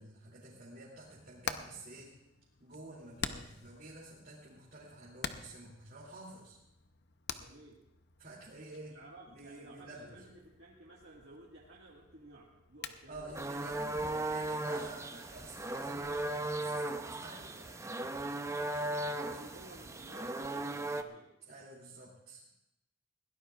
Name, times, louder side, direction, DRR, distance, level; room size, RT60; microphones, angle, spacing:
voice 1, 0.0-2.1 2.6-6.6 8.2-9.0 9.3-10.2 13.1-18.1 18.4-19.5 19.8-19.9 21.5-22.5, right 2 dB, 50° right, -6 dB, 2.9 m, -50 dB
Hammer, 0.9-16.2, left 6 dB, 60° left, 0.7 m, -48 dB
voice 2, 7.4-7.8 8.9-13.7 19.1-21.3, right 2 dB, 70° right, -4 dB, 1.8 m, -54 dB
sound 1, 13.3-21.0, right 2 dB, 15° right, 0.6 m, -37 dB
21.5 x 16.5 x 2.4 m, 0.84 s
head